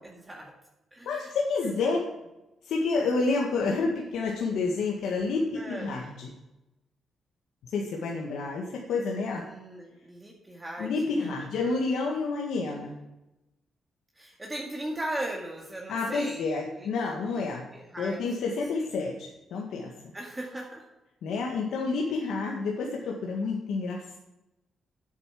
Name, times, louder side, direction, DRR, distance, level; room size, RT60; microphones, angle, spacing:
voice 1, 0.1-0.5 0.9-1.3 1.6-1.9 5.5-5.9 9.4-11.5 14.2-16.9 17.4-18.9 20.1-20.9, right 1 dB, 15° right, -1 dB, 2.0 m, -39 dB
voice 2, 1.0-2.0 2.6-6.3 7.6-9.4 10.8-13.0 15.9-17.7 18.0-19.9 21.2-24.2, left 4 dB, 85° left, -1 dB, 1.8 m, -29 dB
9.7 x 8.3 x 7.4 m, 0.97 s
cardioid pair, 95°, 0 cm